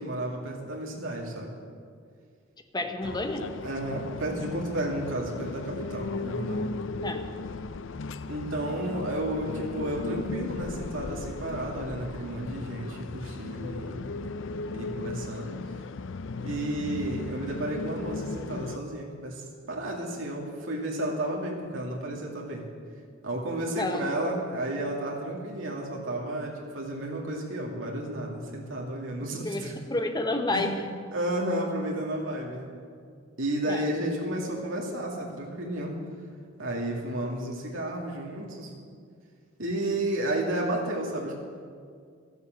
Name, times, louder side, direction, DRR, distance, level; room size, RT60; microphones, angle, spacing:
voice 1, 0.0-1.5 3.6-6.7 8.3-14.2 14.7-15.5 16.4-22.6 23.2-29.7 30.5-30.7 31.1-32.7 33.4-36.0 36.6-38.7 39.6-41.4, right 1 dB, 85° right, -1 dB, 2.3 m, -32 dB
voice 2, 2.7-3.5 7.0-7.2 23.8-24.1 29.4-30.8 33.7-33.9, left 2 dB, 20° left, 5 dB, 1.1 m, -30 dB
sound 1, 3.0-18.8, left 3 dB, 70° left, 0.5 m, -36 dB
13.5 x 10.5 x 7.5 m, 2.1 s
head